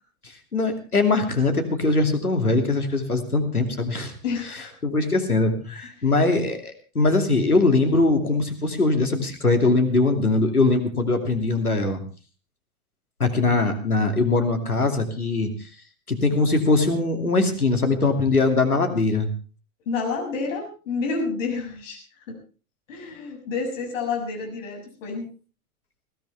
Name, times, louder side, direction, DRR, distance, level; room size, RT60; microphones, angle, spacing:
voice 1, 0.5-4.1 4.8-12.0 13.2-15.5 16.1-19.3, left 3 dB, 85° left, 5 dB, 2.8 m, -21 dB
voice 2, 4.2-4.7 6.0-6.2 19.9-22.0 22.3-22.4 22.9-25.3, left 4 dB, 60° left, 2 dB, 7.3 m, -29 dB
20.5 x 16.0 x 3.5 m, 0.35 s
figure-of-eight pair, 95°, 43 cm